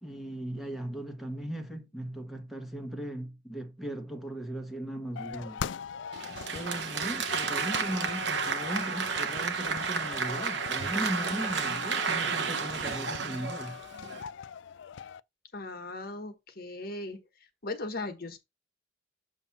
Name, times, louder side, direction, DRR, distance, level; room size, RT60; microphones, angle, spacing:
voice 1, 0.0-5.7 6.5-13.8, right 1 dB, ahead, 1.1 m, -38 dB
sound 1, 5.2-15.2, left 7 dB, 70° left, 0.3 m, -41 dB
Applause, 6.1-14.2, right 5 dB, 65° right, 0.9 m, -32 dB
voice 2, 15.5-17.2 17.6-18.4, left 2 dB, 50° left, 1.2 m, -38 dB
7.1 x 2.8 x 5.8 m
head